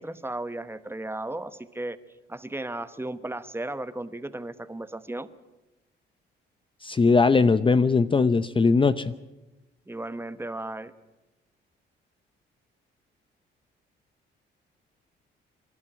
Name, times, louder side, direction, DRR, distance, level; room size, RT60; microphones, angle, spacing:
voice 1, 0.0-2.0 2.3-5.3 9.9-10.9, right 2 dB, 10° right, 12 dB, 1.2 m, -35 dB
voice 2, 6.8-9.1, left 4 dB, 25° left, 13 dB, 0.7 m, -20 dB
28.0 x 12.0 x 10.0 m, 1.0 s
cardioid pair, 90°, 20 cm